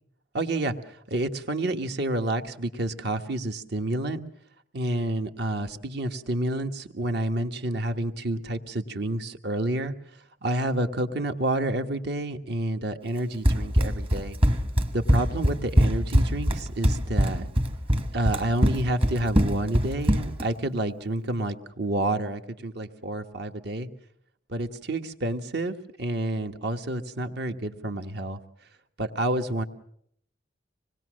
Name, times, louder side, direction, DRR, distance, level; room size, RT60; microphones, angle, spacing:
voice 1, 0.3-4.2 4.7-9.9 10.4-14.4 14.9-17.5 18.1-23.9 24.5-28.4 29.0-29.6, right 1 dB, 60° right, 7 dB, 1.4 m, -29 dB
Run, 13.4-20.5, equal, 30° right, 1.3 m, -22 dB
26.0 x 20.0 x 6.3 m, 0.67 s
head